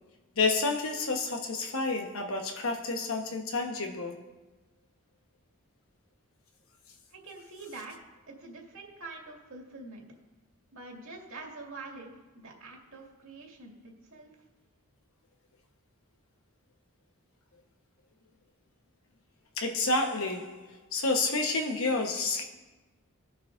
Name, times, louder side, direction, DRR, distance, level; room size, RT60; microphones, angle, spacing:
voice 1, 0.4-4.2 19.6-22.4, left 3 dB, 65° left, 1.1 m, -29 dB
voice 2, 7.1-8.0 8.3-10.0 10.7-14.3, right 3 dB, 65° right, 2.2 m, -45 dB
20.0 x 7.1 x 2.6 m
head